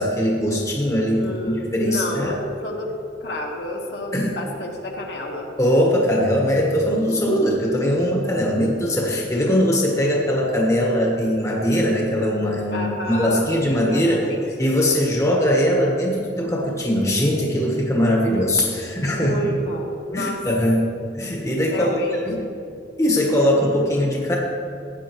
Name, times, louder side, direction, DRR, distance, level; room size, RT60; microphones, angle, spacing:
voice 1, 0.0-2.3 4.1-4.3 5.6-14.3 14.6-19.3 20.1-20.8 21.1-22.4 23.0-24.4, equal, 15° left, -2 dB, 1.3 m, -21 dB
voice 2, 1.2-2.9 3.2-5.5 12.7-14.4 19.0-20.4 21.7-22.5, left 1 dB, 60° left, -1 dB, 1.4 m, -30 dB
15.5 x 9.3 x 3.1 m, 2.4 s
head